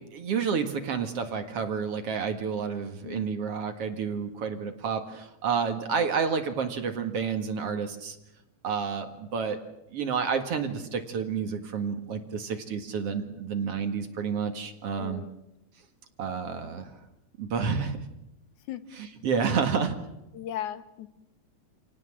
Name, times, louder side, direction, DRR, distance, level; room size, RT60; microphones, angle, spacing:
voice 1, 0.0-8.2 8.6-9.6 9.9-15.2 16.2-16.9 17.4-18.0 19.0-20.0, right 6 dB, 50° right, 7 dB, 2.7 m, -30 dB
voice 2, 3.0-3.4 15.0-15.3 18.7-18.8 20.3-21.1, left 11 dB, 75° left, 13 dB, 2.5 m, -37 dB
28.0 x 18.0 x 7.5 m, 0.89 s
omnidirectional pair, 3.6 m